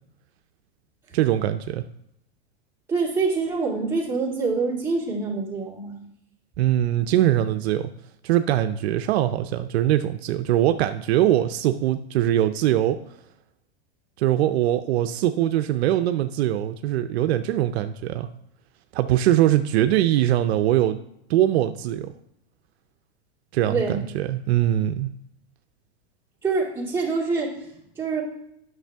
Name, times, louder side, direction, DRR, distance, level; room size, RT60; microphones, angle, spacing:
voice 1, 1.1-1.8 6.6-7.9 8.2-13.0 14.2-18.3 18.9-21.0 21.3-22.1 23.5-25.1, right 12 dB, 70° right, 9 dB, 0.5 m, -22 dB
voice 2, 2.9-6.0 23.7-24.0 26.4-27.7 28.0-28.2, right 4 dB, 5° right, -6 dB, 2.2 m, -25 dB
9.0 x 6.2 x 3.4 m, 0.78 s
supercardioid pair, 135°, 33 cm